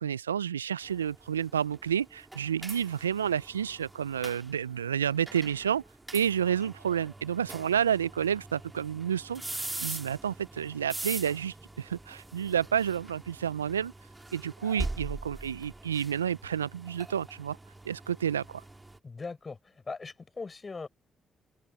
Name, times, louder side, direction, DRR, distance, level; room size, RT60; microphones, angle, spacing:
voice 1, 0.0-5.8 6.1-13.9 14.3-17.6 17.9-18.6, right 8 dB, 90° right, 0.4 m, -30 dB
sound 1, 0.8-19.0, right 2 dB, 20° right, 1.7 m, -43 dB
voice 2, 19.0-19.6 19.9-20.9, left 4 dB, 35° left, 5.9 m, -39 dB
open air
hypercardioid pair, 45°, 0 cm